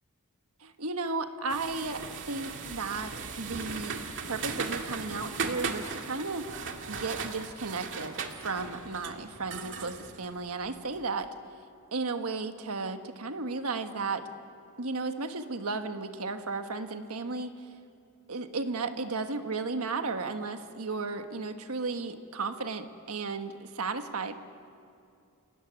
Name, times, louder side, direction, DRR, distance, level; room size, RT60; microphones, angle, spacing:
voice 1, 0.6-3.1 3.4-6.5 6.9-11.3 11.9-14.2 14.8-17.5 18.3-24.4, right 3 dB, 75° right, 7 dB, 1.5 m, -34 dB
sound 1, 1.5-11.0, right 5 dB, 60° right, 2.1 m, -38 dB
30.0 x 18.0 x 9.6 m, 2.5 s
head